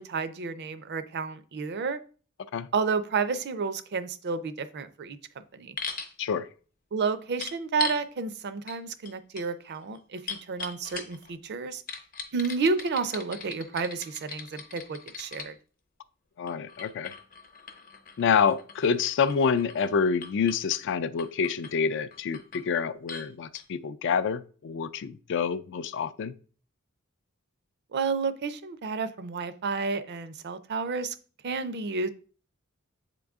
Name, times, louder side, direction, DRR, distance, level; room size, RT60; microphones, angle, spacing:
voice 1, 0.0-2.0 2.7-5.2 5.5-5.8 6.9-11.8 12.3-15.6 27.9-31.1 31.4-32.1, right 4 dB, 50° right, 0.5 m, -31 dB
sound 1, 5.8-6.1 7.4-8.0 8.7-8.8 9.0-11.3 11.9-15.5 16.5-19.9 20.2-20.8 21.2-21.7 22.1-22.7 23.1-23.3 23.5-23.6, left 5 dB, 45° left, 0.8 m, -40 dB
voice 2, 16.4-17.1 18.2-26.3, left 6 dB, 60° left, 0.4 m, -27 dB
7.8 x 3.7 x 3.5 m
head